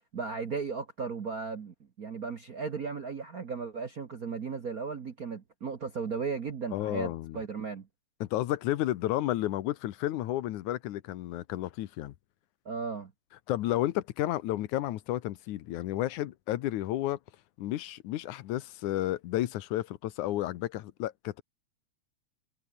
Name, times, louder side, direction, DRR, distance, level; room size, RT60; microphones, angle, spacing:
voice 1, 0.1-7.9 12.6-13.1, right 5 dB, 50° right, 1.1 m, -36 dB
voice 2, 6.7-7.4 8.2-12.1 13.5-17.2 17.6-21.4, left 14 dB, 85° left, 2.4 m, -32 dB
omnidirectional pair, 3.4 m